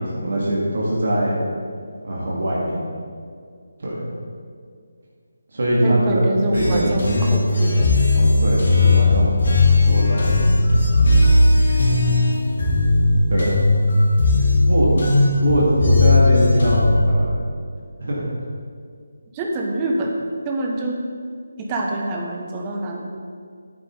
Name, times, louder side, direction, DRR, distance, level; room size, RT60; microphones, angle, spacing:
voice 1, 0.0-1.4 2.0-2.9 3.8-4.0 5.5-6.9 8.2-10.6 11.1-11.3 13.3-13.5 14.6-14.9 15.4-17.4 18.0-18.3, right 1 dB, 50° right, -5 dB, 2.3 m, -22 dB
voice 2, 5.8-7.9 11.7-11.8 19.3-20.1 20.4-21.0 21.6-23.1, right 2 dB, 20° right, 0 dB, 1.2 m, -25 dB
sound 1, 6.5-17.0, left 2 dB, 50° left, 2.9 m, -17 dB
11.0 x 8.9 x 4.0 m, 2.1 s
figure-of-eight pair, 155°, 0 cm